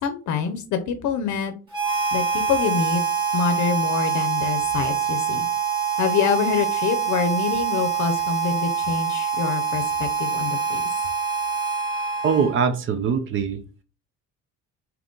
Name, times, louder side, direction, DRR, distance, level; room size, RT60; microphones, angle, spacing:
voice 1, 0.0-1.5 2.1-3.0 3.3-5.5 6.0-10.8, left 6 dB, 70° left, 0.6 m, -26 dB
Harmonica, 1.7-12.7, right 6 dB, 15° right, 1.2 m, -25 dB
voice 2, 12.2-13.6, right 6 dB, 40° right, 0.4 m, -22 dB
3.7 x 2.9 x 3.7 m
cardioid pair, 175°, 30 cm